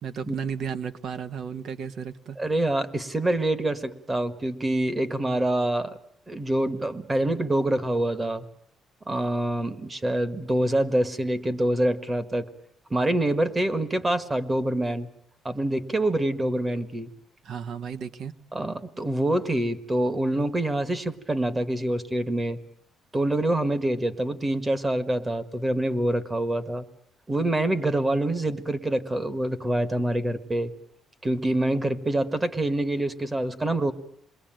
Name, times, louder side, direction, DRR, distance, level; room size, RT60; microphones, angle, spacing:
voice 1, 0.0-2.4 17.4-18.3, right 7 dB, 60° right, 11 dB, 1.0 m, -33 dB
voice 2, 2.4-6.0 6.3-8.4 9.1-12.5 12.9-15.1 15.4-17.1 18.5-22.6 23.1-26.8 27.3-30.7 31.2-33.9, right 1 dB, 15° right, 13 dB, 1.5 m, -26 dB
28.0 x 21.5 x 9.0 m, 0.66 s
cardioid pair, 140°, 0 cm